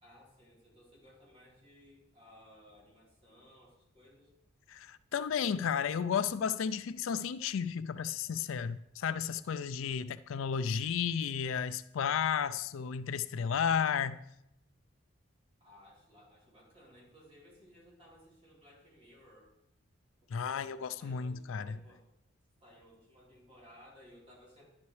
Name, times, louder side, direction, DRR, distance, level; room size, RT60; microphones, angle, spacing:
voice 1, 0.0-4.3 9.7-10.1 15.6-19.5 21.0-22.0 22.6-24.6, equal, 30° right, 3.7 m, -59 dB
voice 2, 4.7-14.2 20.3-21.8, left 7 dB, 75° left, 0.4 m, -33 dB
11.5 x 10.5 x 3.2 m
head